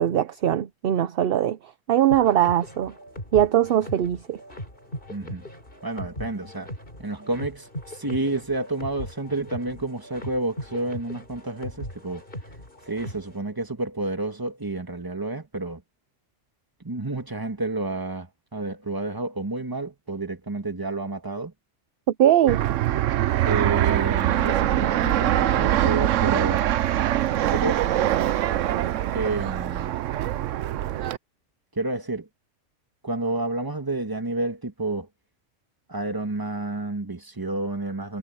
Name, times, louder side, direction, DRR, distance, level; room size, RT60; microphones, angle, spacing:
voice 1, 0.0-1.6 1.9-2.9 3.3-4.4 22.2-22.6, right 11 dB, 60° right, 0.7 m, -21 dB
sound 1, 2.1-13.4, equal, 45° left, 5.4 m, -39 dB
voice 2, 5.1-5.5 5.8-6.7 7.0-12.2 12.9-15.8 16.8-21.5 23.4-26.6 27.5-27.9 29.0-30.0 31.7-32.3 33.0-35.1 35.9-38.2, right 2 dB, 15° right, 1.6 m, -30 dB
Fixed-wing aircraft airplane, 22.5-31.2, right 12 dB, 85° right, 1.0 m, -23 dB
omnidirectional pair, 1.3 m